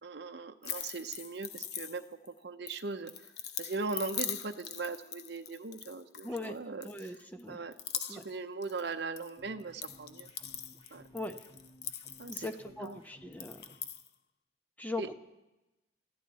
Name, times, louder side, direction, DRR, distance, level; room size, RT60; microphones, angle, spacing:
voice 1, 0.0-2.0 2.4-3.3 3.6-6.9 7.5-10.3 10.9-11.0 12.2-12.5 12.8-13.0 15.0-15.1, right 3 dB, 65° right, 6 dB, 0.7 m, -39 dB
sound 1, 0.6-2.3 2.7-6.5 6.8-7.4 7.7-8.4 8.6-9.3 9.6-12.9 13.3-14.1, left 10 dB, 65° left, 0.8 m, -41 dB
voice 2, 6.2-6.6 6.8-7.6 8.1-8.2 11.1-11.4 12.3-13.6 14.8-15.1, left 2 dB, 10° left, 7 dB, 0.9 m, -40 dB
sound 2, 9.4-13.8, equal, 30° left, 2.1 m, -58 dB
22.5 x 15.0 x 4.2 m, 1.0 s
head